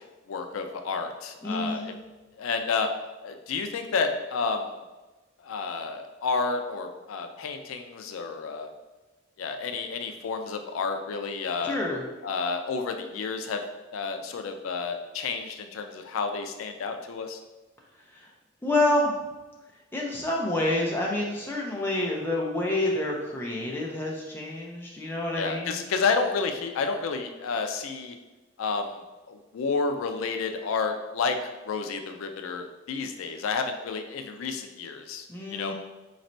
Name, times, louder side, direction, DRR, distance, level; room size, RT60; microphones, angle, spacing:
voice 1, 0.3-1.9 2.4-2.9 3.2-4.7 5.4-8.7 9.4-11.8 12.2-13.6 13.9-17.4 25.3-28.2 28.6-29.0 29.3-35.7, left 4 dB, 85° left, 6 dB, 0.3 m, -30 dB
voice 2, 1.4-1.9 11.6-12.0 18.2-18.3 18.6-19.1 19.9-25.8 35.3-35.7, left 1 dB, 10° left, -3 dB, 0.5 m, -28 dB
4.1 x 3.1 x 2.6 m, 1.1 s
head